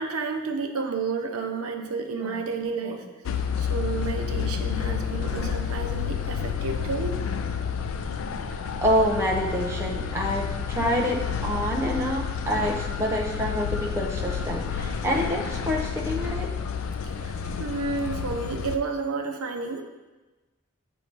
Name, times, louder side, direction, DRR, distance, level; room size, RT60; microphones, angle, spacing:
voice 1, 0.0-3.1 3.6-7.2 17.1-19.8, right 4 dB, 85° right, 4 dB, 0.6 m, -31 dB
sound 1, 3.3-18.8, left 7 dB, 70° left, 0.4 m, -30 dB
voice 2, 4.7-5.6 8.8-16.5, equal, 10° right, -3 dB, 0.5 m, -27 dB
7.8 x 2.7 x 4.5 m, 1.2 s
head